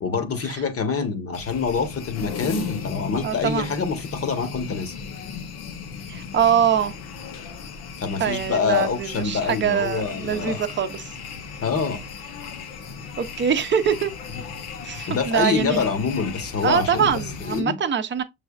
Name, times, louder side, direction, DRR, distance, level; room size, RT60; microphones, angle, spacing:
voice 1, 0.0-4.9 8.0-10.6 11.6-12.0 15.1-17.2 17.5-17.7, left 5 dB, 40° left, 1.1 m, -26 dB
sound 1, 1.3-17.6, left 6 dB, 85° left, 0.9 m, -36 dB
voice 2, 3.2-3.7 6.1-6.9 8.2-11.1 13.2-14.1 14.8-15.8 16.6-18.2, right 8 dB, 30° right, 0.6 m, -23 dB
6.1 x 3.3 x 2.3 m
supercardioid pair, 80°, 37 cm